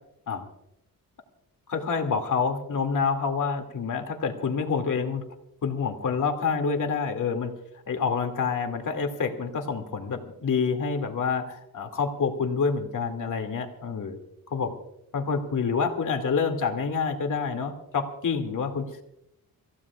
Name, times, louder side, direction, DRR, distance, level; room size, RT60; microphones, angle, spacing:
voice 1, 1.7-5.2 5.6-7.5 7.9-14.2 14.5-14.8 15.1-18.9, left 5 dB, 55° left, 5 dB, 2.4 m, -27 dB
27.5 x 15.5 x 2.4 m, 0.80 s
cardioid pair, 110°, 36 cm